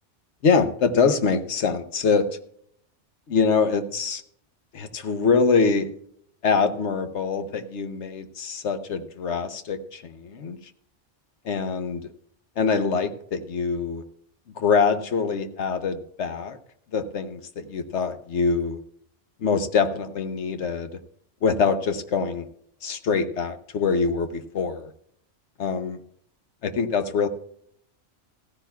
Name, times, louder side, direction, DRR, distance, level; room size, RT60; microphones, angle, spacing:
voice 1, 0.4-2.3 3.3-4.2 4.7-5.9 6.4-10.6 11.4-12.0 12.6-14.0 14.6-16.6 16.9-18.8 19.4-20.9 21.4-22.5 22.8-24.9 25.6-26.0 26.6-27.3, left 5 dB, 70° left, 9 dB, 1.2 m, -24 dB
15.5 x 14.5 x 2.3 m, 0.67 s
omnidirectional pair, 1.2 m